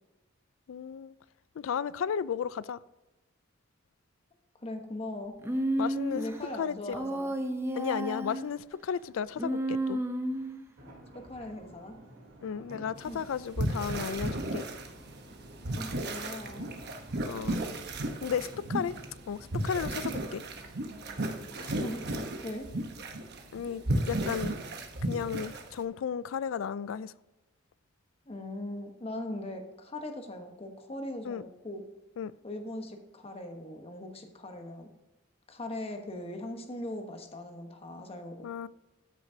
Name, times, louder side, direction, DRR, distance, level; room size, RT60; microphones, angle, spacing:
voice 1, 0.7-1.1 1.6-2.8 5.8-6.2 6.6-7.0 7.8-10.0 12.4-14.6 17.2-17.6 18.2-18.9 19.3-20.4 23.5-24.5 25.0-27.1 31.2-31.4 32.2-32.3 38.4-38.7, left 7 dB, 80° left, 0.3 m, -34 dB
voice 2, 4.6-5.4 6.1-7.3 11.1-12.0 12.9-13.2 15.7-16.8 21.5-22.7 28.3-31.8 32.4-34.9 35.5-38.5, left 1 dB, 30° left, 1.1 m, -40 dB
Human voice, 5.4-6.4 6.9-8.5 9.4-10.6, right 1 dB, 15° right, 0.6 m, -31 dB
sound 1, 10.8-22.2, right 1 dB, 80° right, 3.2 m, -51 dB
sound 2, 13.0-13.1 13.4-25.8, right 1 dB, 55° right, 1.0 m, -34 dB
13.0 x 6.2 x 2.7 m
head